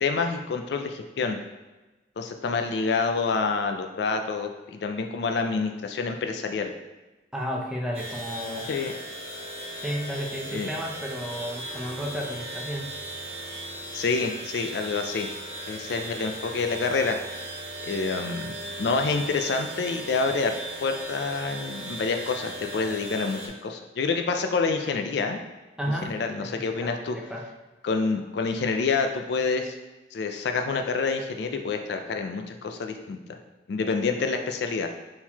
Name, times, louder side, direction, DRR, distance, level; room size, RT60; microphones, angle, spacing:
voice 1, 0.0-1.4 2.2-6.7 8.7-8.9 10.5-10.7 13.9-15.3 15.7-17.2 17.8-20.5 20.8-25.4 26.1-27.2 27.8-29.7 30.1-33.4 33.7-34.9, left 4 dB, 65° left, 5 dB, 0.4 m, -27 dB
voice 2, 7.3-8.7 9.8-12.9 25.8-27.4, equal, 5° right, -2 dB, 0.5 m, -33 dB
sound 1, 7.9-23.5, right 1 dB, 35° right, 0.9 m, -37 dB
4.4 x 3.8 x 2.8 m, 1.1 s
head